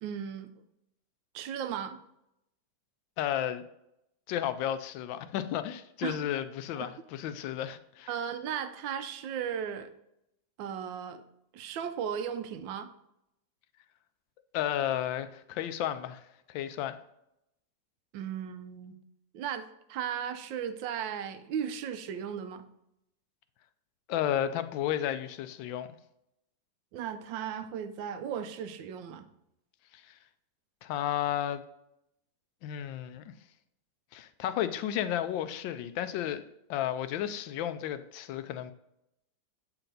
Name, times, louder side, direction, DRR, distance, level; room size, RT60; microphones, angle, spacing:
voice 1, 0.0-0.5 1.3-2.0 6.0-6.2 6.8-6.9 8.1-9.9 10.6-11.2 11.5-12.9 18.1-19.0 19.3-22.6 26.9-29.3, right 8 dB, 85° right, 10 dB, 1.3 m, -36 dB
voice 2, 3.2-3.6 4.3-8.1 14.5-16.2 16.5-17.0 24.1-25.9 29.9-30.2 30.8-31.6 32.6-33.3 34.1-36.4 36.7-38.7, left 11 dB, 85° left, 11 dB, 1.3 m, -33 dB
7.8 x 4.5 x 3.8 m, 0.82 s
omnidirectional pair, 2.0 m